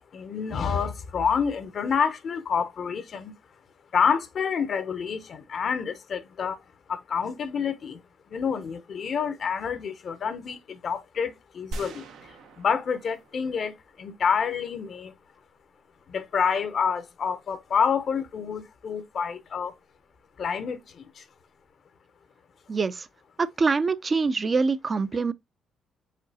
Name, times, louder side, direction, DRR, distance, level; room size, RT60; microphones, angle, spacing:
voice 1, 0.1-3.3 3.9-6.6 6.9-8.0 8.3-15.1 16.1-19.7 20.4-21.2, left 6 dB, 55° left, 0.6 m, -28 dB
sound 1, 11.7-14.0, right 2 dB, 80° right, 0.7 m, -41 dB
voice 2, 22.7-23.1 23.4-25.3, right 4 dB, 35° right, 0.4 m, -24 dB
5.0 x 3.9 x 2.7 m
cardioid pair, 90°, 0 cm